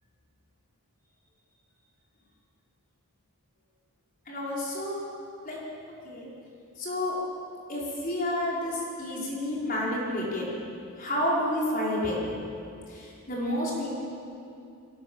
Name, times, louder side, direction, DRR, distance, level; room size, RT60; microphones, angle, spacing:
voice 1, 4.3-5.0 5.4-5.6 6.0-6.3 6.8-7.1 7.7-10.5 11.0-12.2 12.9-13.9, left 1 dB, 40° left, -5 dB, 5.5 m, -30 dB
22.5 x 19.5 x 7.4 m, 2.6 s
head